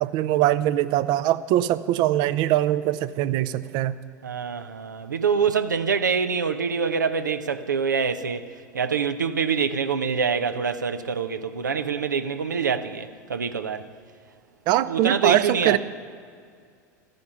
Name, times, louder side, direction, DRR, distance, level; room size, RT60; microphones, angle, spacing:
voice 1, 0.0-3.9 14.7-15.8, right 13 dB, 50° right, 0.6 m, -22 dB
voice 2, 4.2-8.5 8.7-13.8 14.9-15.8, right 6 dB, 85° right, 0.8 m, -25 dB
14.0 x 10.5 x 7.1 m
hypercardioid pair, 85°, 10 cm